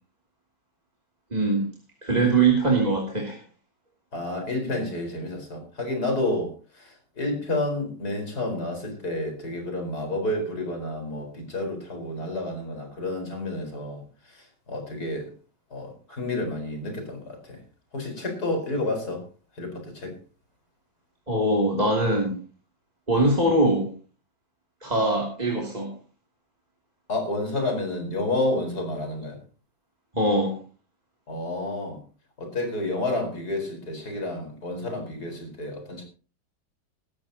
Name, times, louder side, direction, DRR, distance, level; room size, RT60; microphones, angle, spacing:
voice 1, 1.3-1.6 2.0-3.4 21.3-22.4 23.1-23.9 24.8-25.9 30.1-30.5, right 2 dB, 25° right, -2 dB, 2.9 m, -22 dB
voice 2, 4.1-15.3 15.7-17.6 17.9-19.2 19.6-20.2 27.1-29.4 31.3-32.0 32.4-36.0, left 2 dB, 65° left, 4 dB, 5.2 m, -30 dB
19.0 x 14.0 x 2.9 m, 0.36 s
omnidirectional pair, 1.8 m